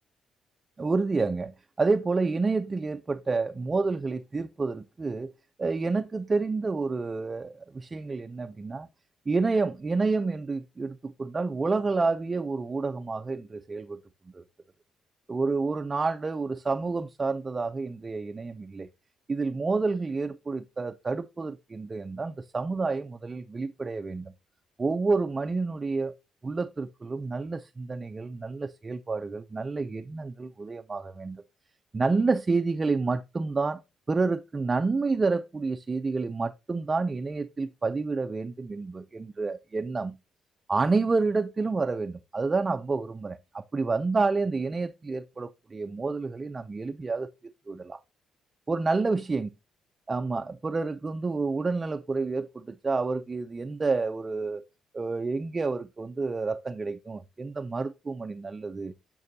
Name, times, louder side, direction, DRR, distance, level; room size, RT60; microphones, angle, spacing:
voice 1, 0.8-5.3 5.6-8.9 9.3-14.0 14.3-14.4 15.3-18.9 19.3-24.3 24.8-26.1 26.4-31.4 31.9-33.8 34.1-40.2 40.7-47.3 47.7-48.0 48.7-49.5 50.1-54.6 54.9-58.9, right 3 dB, 30° right, 0.4 m, -29 dB
9.4 x 5.3 x 2.7 m
cardioid pair, 90°, 0 cm